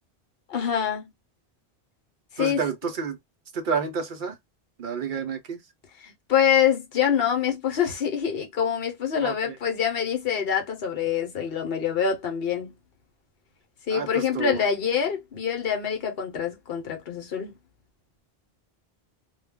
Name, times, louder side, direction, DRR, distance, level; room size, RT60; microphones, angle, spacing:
voice 1, 0.5-1.0 2.3-2.6 6.0-12.7 13.9-17.6, left 8 dB, 65° left, 1.0 m, -25 dB
voice 2, 2.4-3.2 3.5-4.4 4.8-5.6 9.2-9.6 13.9-14.6, right 5 dB, 60° right, 0.6 m, -30 dB
2.2 x 2.2 x 3.4 m
omnidirectional pair, 1.1 m